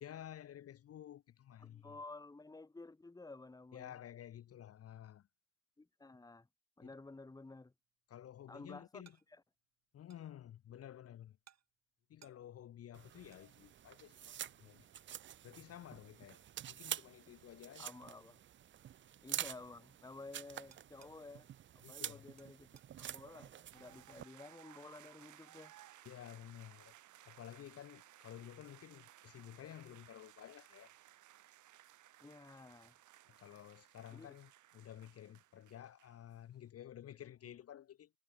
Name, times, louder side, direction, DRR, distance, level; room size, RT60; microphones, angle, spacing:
voice 1, 0.0-2.0 3.7-5.3 6.8-6.9 8.1-9.1 9.9-11.4 12.1-14.9 15.4-16.4 16.7-17.9 21.8-22.3 26.1-26.9 27.3-30.9 33.4-38.1, left 11 dB, 50° left, 0.7 m, -52 dB
voice 2, 1.6-4.0 5.8-6.5 6.8-7.7 8.5-9.4 17.8-18.4 19.2-21.5 21.7-22.7 23.0-25.7 32.2-32.9 34.1-34.3, left 3 dB, 10° left, 1.2 m, -53 dB
sound 1, 7.7-26.1, right 9 dB, 60° right, 6.1 m, -74 dB
sound 2, 12.9-24.2, right 10 dB, 40° right, 0.4 m, -48 dB
sound 3, 23.7-36.4, right 13 dB, 80° right, 2.2 m, -61 dB
cardioid pair, 90°, 30 cm